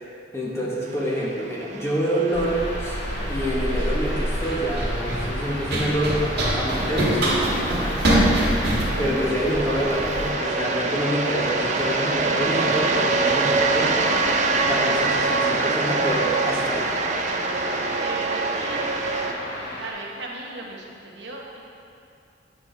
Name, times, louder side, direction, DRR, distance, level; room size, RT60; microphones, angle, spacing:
voice 1, 0.3-3.0 3.3-8.0 9.0-14.1 14.7-16.9, equal, 15° left, -5 dB, 1.1 m, -27 dB
sound 1, 1.0-19.3, right 3 dB, 40° right, 0.5 m, -26 dB
sound 2, 2.3-19.9, left 1 dB, 80° left, 1.5 m, -35 dB
Run, 2.4-10.3, right 1 dB, 65° right, 1.7 m, -25 dB
voice 2, 18.0-18.9 19.8-21.7, right 2 dB, 80° right, -2 dB, 1.1 m, -37 dB
8.8 x 6.1 x 3.3 m, 2.5 s
head